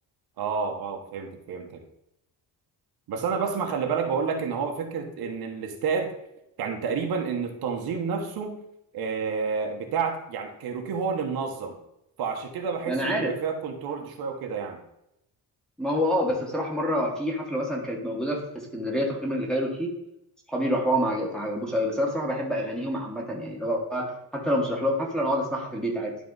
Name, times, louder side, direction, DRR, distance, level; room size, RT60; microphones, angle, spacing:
voice 1, 0.4-1.8 3.1-6.1 6.6-8.6 8.9-11.8 12.2-14.8, right 5 dB, 65° right, 3 dB, 1.3 m, -29 dB
voice 2, 12.9-13.4 15.8-20.0 20.5-26.2, equal, ahead, -3 dB, 1.4 m, -27 dB
11.0 x 4.2 x 4.0 m, 0.82 s
cardioid pair, 160°, 39 cm